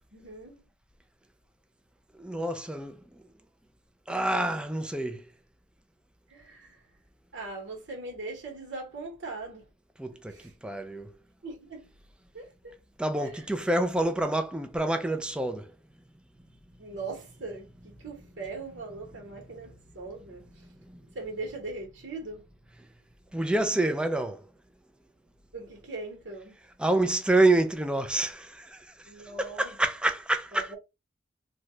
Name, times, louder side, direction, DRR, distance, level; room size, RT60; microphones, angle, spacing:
voice 1, 0.1-0.6 6.3-6.8 7.3-9.6 10.3-10.5 11.4-11.9 12.3-12.7 13.2-13.4 16.5-20.7 21.0-22.4 25.5-26.5 29.0-29.7 30.5-30.8, right 3 dB, 90° right, 1.4 m, -40 dB
voice 2, 2.2-3.2 4.1-5.2 10.0-11.1 13.0-15.7 20.6-21.0 23.3-24.4 26.8-29.1 29.4-30.7, right 2 dB, 5° right, 0.4 m, -27 dB
2.7 x 2.3 x 3.1 m
head